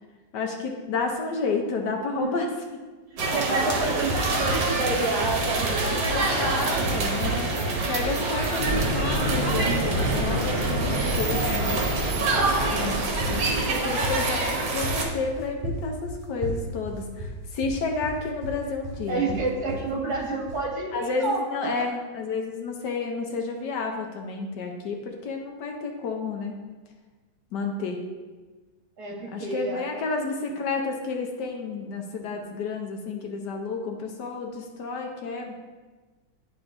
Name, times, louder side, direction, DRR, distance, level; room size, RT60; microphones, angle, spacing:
voice 1, 0.3-2.5 3.5-3.9 6.1-7.5 7.9-11.8 12.7-13.0 13.3-19.4 20.9-26.6 27.5-28.0 29.3-35.5, left 4 dB, 70° left, 2 dB, 1.3 m, -31 dB
voice 2, 3.1-6.0 6.8-6.9 9.7-9.8 19.1-21.4 29.0-29.8, right 3 dB, 55° right, -4 dB, 2.2 m, -29 dB
sound 1, 3.2-15.0, right 3 dB, 75° right, 1.6 m, -26 dB
sound 2, 3.7-20.7, right 1 dB, 35° right, 2.4 m, -34 dB
Fire, 8.5-13.8, right 1 dB, 35° left, 1.8 m, -29 dB
10.5 x 4.3 x 2.6 m, 1.3 s
omnidirectional pair, 2.0 m